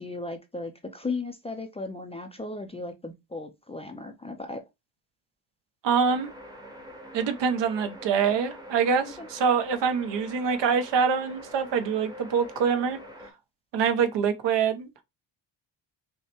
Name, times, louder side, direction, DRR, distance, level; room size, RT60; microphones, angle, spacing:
voice 1, 0.0-4.6 9.2-9.3, left 3 dB, 15° left, 0.4 m, -36 dB
voice 2, 5.8-6.3 7.1-13.0 13.7-15.0, right 6 dB, 70° right, 0.9 m, -25 dB
sound 1, 6.0-13.3, equal, 10° right, 0.8 m, -45 dB
5.5 x 2.1 x 2.9 m
cardioid pair, 145°, 44 cm